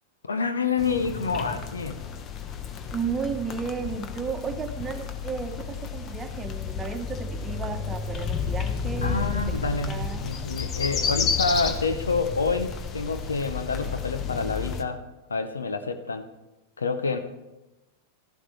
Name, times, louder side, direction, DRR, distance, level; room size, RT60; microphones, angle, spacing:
voice 1, 0.2-2.0 9.0-15.0 15.3-16.3 16.8-17.2, left 4 dB, 90° left, 10 dB, 0.7 m, -28 dB
sound 1, 0.8-14.8, left 6 dB, 35° left, 0.9 m, -32 dB
voice 2, 2.9-10.2, right 5 dB, 20° right, 6 dB, 1.1 m, -33 dB
Livestock farm animals working animals, 7.9-13.9, left 1 dB, 20° left, 2.7 m, -42 dB
13.0 x 11.0 x 3.2 m, 1.0 s
hypercardioid pair, 100°, 0 cm